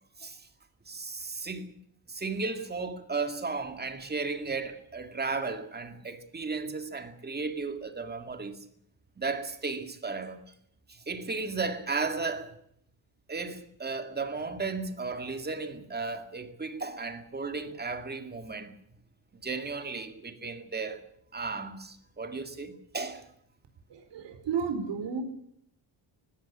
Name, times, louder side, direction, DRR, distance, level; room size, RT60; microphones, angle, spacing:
voice 1, 0.9-1.7 2.1-8.6 9.2-10.4 10.9-12.5 13.3-18.8 19.4-21.0 21.3-23.2, right 4 dB, 20° right, 2.2 m, -35 dB
voice 2, 23.9-25.2, right 6 dB, 65° right, 4.7 m, -32 dB
19.0 x 17.0 x 10.0 m
cardioid pair, 155°, 47 cm